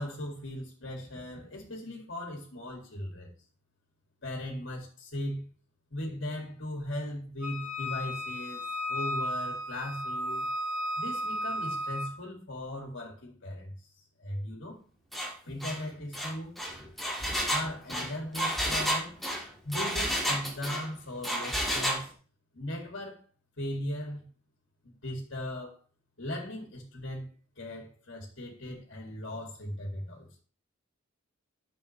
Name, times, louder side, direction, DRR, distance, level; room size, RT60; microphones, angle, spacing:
voice 1, 0.0-3.3 4.2-5.5 5.9-10.5 11.0-13.7 14.2-14.8 15.5-16.6 17.5-19.1 19.6-22.1 22.5-23.2 23.6-24.2 24.8-25.8 26.2-27.3 27.6-30.4, left 1 dB, 65° left, 2.2 m, -38 dB
Wind instrument woodwind instrument, 7.4-12.1, equal, 40° left, 3.3 m, -34 dB
Engine, 15.1-15.3 15.6-15.8 16.1-20.9 21.2-22.0, equal, ahead, 1.9 m, -31 dB
11.0 x 7.1 x 3.2 m
head